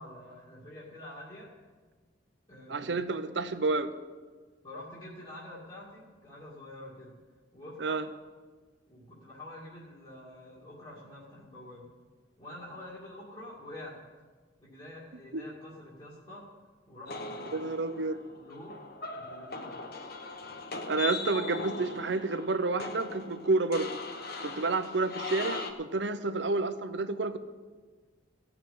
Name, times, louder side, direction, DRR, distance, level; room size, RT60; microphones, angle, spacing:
voice 1, 0.0-1.5 2.5-2.9 4.6-7.2 7.5-8.0 8.9-11.9 12.4-14.0 14.6-16.5 16.9-17.6 18.4-18.8 19.1-19.7, left 1 dB, 30° left, -8 dB, 2.3 m, -47 dB
voice 2, 2.7-3.9 7.8-8.1 15.3-15.4 17.5-18.2 20.9-23.9 24.4-27.4, right 3 dB, 70° right, 10 dB, 0.8 m, -30 dB
sound 1, 17.1-25.7, left 3 dB, 55° left, 1.2 m, -40 dB
16.0 x 6.1 x 8.6 m, 1.4 s
head